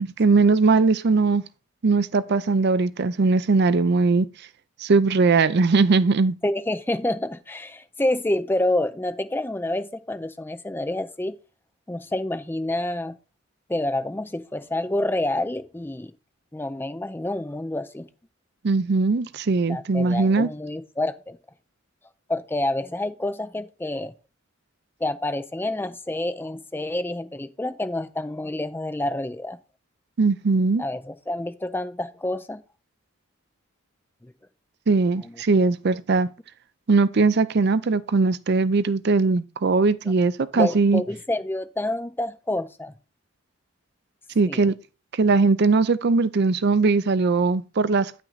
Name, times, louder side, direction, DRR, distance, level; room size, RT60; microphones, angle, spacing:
voice 1, 0.0-1.4 1.8-4.3 4.8-6.4 18.6-20.5 30.2-30.8 34.9-36.3 36.9-41.0 44.4-44.7 45.2-48.2, right 4 dB, 55° right, 0.5 m, -20 dB
voice 2, 6.4-11.4 11.9-13.2 13.7-16.1 16.5-18.1 19.7-21.4 22.3-24.1 25.0-29.6 30.8-32.6 34.2-34.3 35.2-35.4 40.5-42.9 44.5-44.7, left 1 dB, 10° left, 0.4 m, -28 dB
9.0 x 5.9 x 4.0 m
head